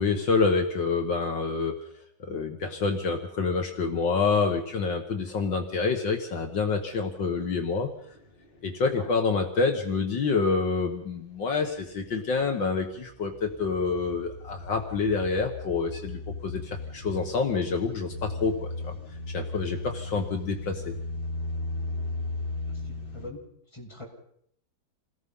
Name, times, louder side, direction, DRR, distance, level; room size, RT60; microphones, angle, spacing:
voice 1, 0.0-1.8 2.3-7.9 8.6-18.9 19.3-20.9, left 4 dB, 70° left, 4 dB, 2.4 m, -27 dB
sound 1, 5.2-5.5 5.8-8.9 10.9-11.0 11.7-23.3, left 2 dB, 90° left, 4.4 m, -37 dB
voice 2, 22.7-23.4 23.7-24.1, left 2 dB, 15° left, -3 dB, 7.6 m, -43 dB
28.5 x 19.0 x 5.5 m, 0.68 s
omnidirectional pair, 2.1 m